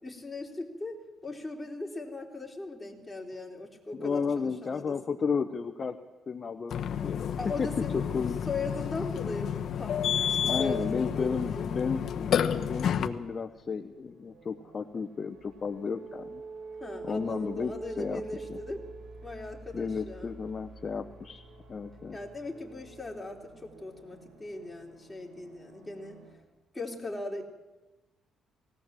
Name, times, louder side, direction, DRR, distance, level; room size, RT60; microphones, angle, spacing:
voice 1, 0.0-5.2 7.4-8.0 8.5-11.6 16.8-18.8 19.2-20.4 22.1-26.2 26.7-27.4, left 2 dB, 15° left, 0 dB, 4.0 m, -39 dB
voice 2, 3.9-6.0 6.3-7.7 7.9-8.4 10.4-16.4 17.0-18.2 18.5-18.6 19.7-21.4 21.7-22.2, left 5 dB, 40° left, 7 dB, 1.0 m, -33 dB
Burping eructation, 6.7-13.1, left 8 dB, 65° left, 1.1 m, -30 dB
sound 1, 13.6-26.4, right 3 dB, 85° right, 5.0 m, -47 dB
19.5 x 17.5 x 7.6 m, 1.1 s
cardioid pair, 90°, 0 cm